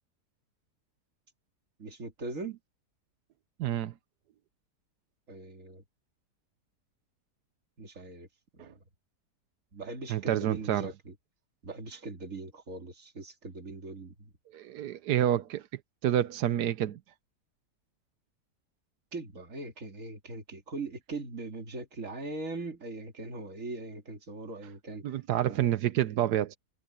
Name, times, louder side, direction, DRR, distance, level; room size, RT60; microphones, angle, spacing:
voice 1, 1.8-2.6 5.3-5.8 7.8-8.3 8.5-8.8 9.7-11.1 11.6-14.3 19.1-25.2 25.5-25.8, right 3 dB, 50° right, 2.9 m, -40 dB
voice 2, 3.6-3.9 8.6-8.7 10.1-10.9 14.5-15.7 16.0-17.0 25.0-26.6, right 11 dB, 85° right, 1.3 m, -28 dB
omnidirectional pair, 1.7 m